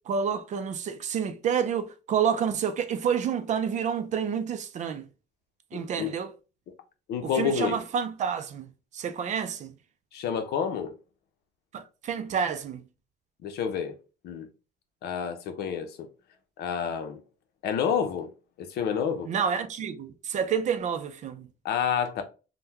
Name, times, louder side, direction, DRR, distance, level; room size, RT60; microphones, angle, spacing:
voice 1, 0.1-5.1 5.7-6.3 7.2-8.7 8.9-9.7 11.7-12.8 19.3-21.5, right 7 dB, 45° right, 0.4 m, -29 dB
voice 2, 5.7-6.1 7.1-7.8 10.1-10.9 13.4-13.9 14.2-14.5 15.0-16.1 16.6-17.2 17.6-18.3 18.6-19.3 21.6-22.2, left 7 dB, 70° left, 0.7 m, -29 dB
3.5 x 2.2 x 2.9 m
cardioid pair, 110°, 17 cm